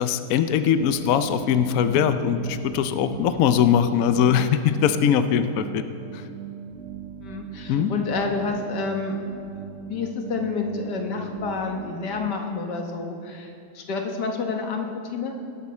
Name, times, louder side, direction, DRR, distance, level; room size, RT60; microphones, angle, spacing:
voice 1, 0.0-5.8 6.1-6.2 7.7-7.9, left 8 dB, 70° left, 10 dB, 0.9 m, -21 dB
sound 1, 0.8-12.3, right 9 dB, 75° right, 0.6 m, -38 dB
voice 2, 7.2-9.4 9.9-15.4, left 4 dB, 85° left, 3 dB, 1.8 m, -29 dB
18.5 x 10.5 x 4.3 m, 2.6 s
omnidirectional pair, 1.8 m